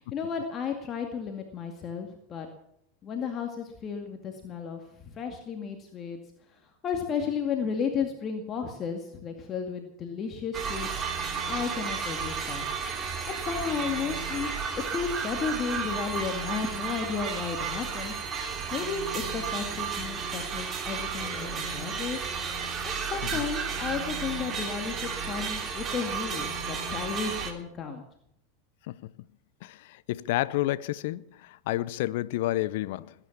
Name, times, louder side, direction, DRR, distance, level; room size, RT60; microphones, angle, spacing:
voice 1, 0.0-2.5 3.0-6.2 6.5-10.9 11.4-12.6 13.3-14.6 14.9-18.1 18.7-22.2 22.8-28.0, left 6 dB, 35° left, 2.1 m, -33 dB
sound 1, 10.5-27.5, right 6 dB, 30° right, 3.0 m, -33 dB
voice 2, 29.6-33.1, left 16 dB, 60° left, 0.6 m, -30 dB
19.5 x 9.8 x 7.2 m
hypercardioid pair, 90°, 0 cm